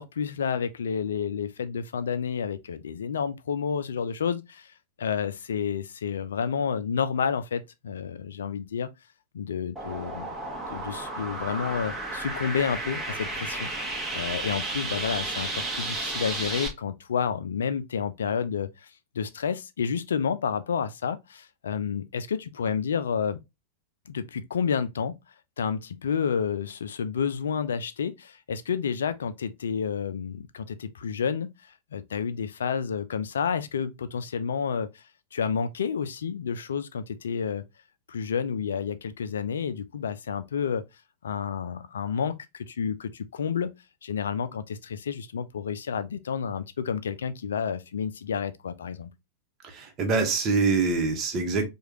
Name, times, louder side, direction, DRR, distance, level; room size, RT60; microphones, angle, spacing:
voice 1, 0.0-4.7 5.0-8.9 9.3-10.3 10.7-18.9 19.1-23.4 24.1-25.2 25.6-35.0 35.3-37.6 38.1-40.8 41.2-43.7 44.0-49.1, left 7 dB, 65° left, 0.4 m, -30 dB
sound 1, 9.8-16.7, right 2 dB, 10° right, 1.2 m, -33 dB
voice 2, 49.6-51.7, right 4 dB, 30° right, 1.1 m, -25 dB
4.7 x 2.4 x 2.9 m
figure-of-eight pair, 90°, 0 cm